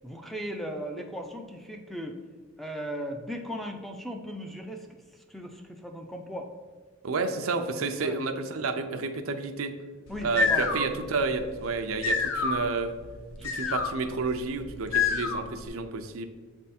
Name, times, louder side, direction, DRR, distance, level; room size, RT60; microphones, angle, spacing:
voice 1, 0.0-2.2 2.6-6.5 8.0-8.2 10.1-10.7 13.4-13.8, equal, ahead, 4 dB, 0.4 m, -37 dB
voice 2, 7.0-9.7 10.2-12.9 13.4-16.3, right 4 dB, 90° right, 7 dB, 0.6 m, -30 dB
sound 1, 10.1-15.7, left 5 dB, 85° left, 0.7 m, -29 dB
7.6 x 3.5 x 4.2 m, 1.5 s
head